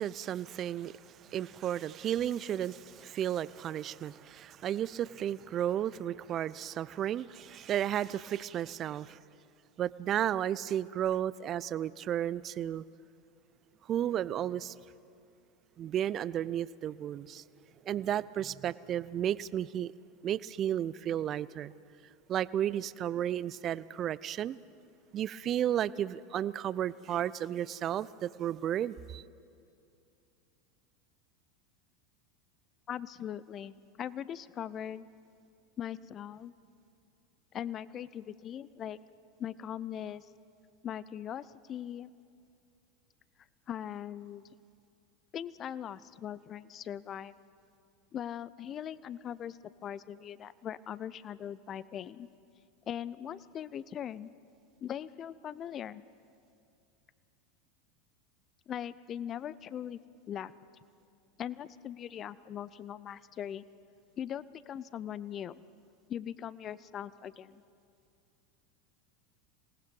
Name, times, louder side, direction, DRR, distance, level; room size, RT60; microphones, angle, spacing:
voice 1, 0.0-9.2 9.8-12.8 13.9-14.7 15.8-17.4 17.9-19.9 20.2-21.7 22.3-24.6 25.1-29.2, right 10 dB, 40° right, 19 dB, 0.5 m, -33 dB
voice 2, 32.9-35.1 35.8-36.5 37.5-39.0 39.4-40.3 40.8-42.1 43.7-44.4 45.3-47.4 48.1-52.3 52.9-54.3 54.8-56.0 58.7-60.0 60.3-60.5 61.4-63.6 64.2-65.6 66.1-67.6, left 9 dB, 35° left, 18 dB, 0.6 m, -40 dB
26.5 x 18.5 x 5.4 m, 2.5 s
hypercardioid pair, 85°, 0 cm